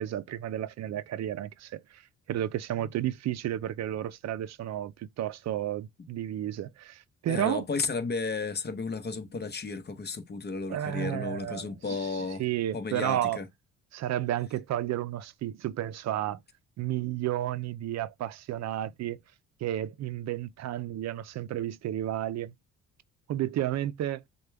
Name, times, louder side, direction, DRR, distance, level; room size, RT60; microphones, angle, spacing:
voice 1, 0.0-7.6 10.7-13.4 13.9-16.4 16.8-19.2 19.6-22.5 23.3-24.2, right 12 dB, 60° right, 0.5 m, -32 dB
voice 2, 7.3-12.4 12.7-13.4, left 4 dB, 35° left, 0.9 m, -33 dB
6.5 x 2.3 x 3.3 m
cardioid pair, 90°, 30 cm